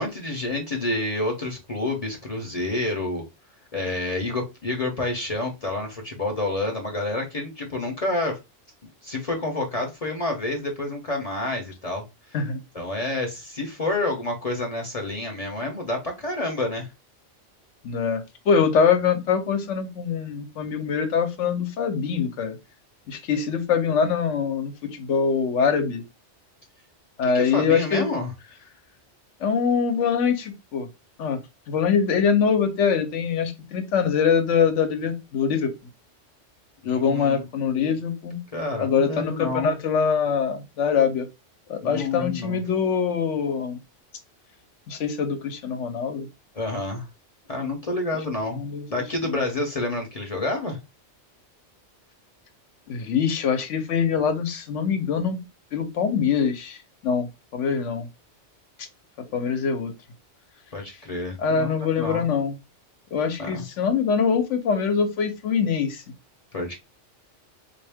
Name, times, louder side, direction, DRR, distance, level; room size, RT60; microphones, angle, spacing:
voice 1, 0.0-3.2 3.7-8.4 8.8-12.4 12.7-16.9 27.3-28.3 36.8-37.4 38.5-39.7 41.8-42.6 46.5-47.0 47.5-48.6 48.9-50.8 60.7-62.3 63.4-63.6 66.5-66.8, left 2 dB, 40° left, 0.7 m, -29 dB
voice 2, 17.8-22.6 23.1-26.0 27.2-28.1 29.4-30.9 31.2-31.4 31.7-35.7 36.8-38.4 38.8-41.3 41.7-43.8 44.9-46.3 48.6-48.8 49.2-49.4 52.9-55.4 55.7-56.8 57.0-57.3 57.5-58.1 58.8-58.9 59.3-59.9 61.4-62.6 63.1-66.0, left 6 dB, 80° left, 1.1 m, -23 dB
3.6 x 2.5 x 3.4 m
omnidirectional pair, 1.2 m